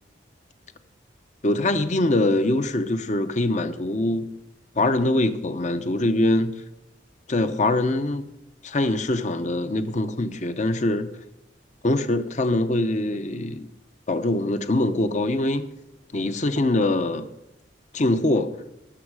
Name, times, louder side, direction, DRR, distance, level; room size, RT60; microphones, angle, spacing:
voice 1, 1.4-4.3 4.8-6.6 7.3-8.3 8.6-11.1 11.8-13.7 14.1-15.7 16.1-17.2 17.9-18.5, left 2 dB, 40° left, 0.8 m, -23 dB
18.5 x 7.3 x 4.8 m
head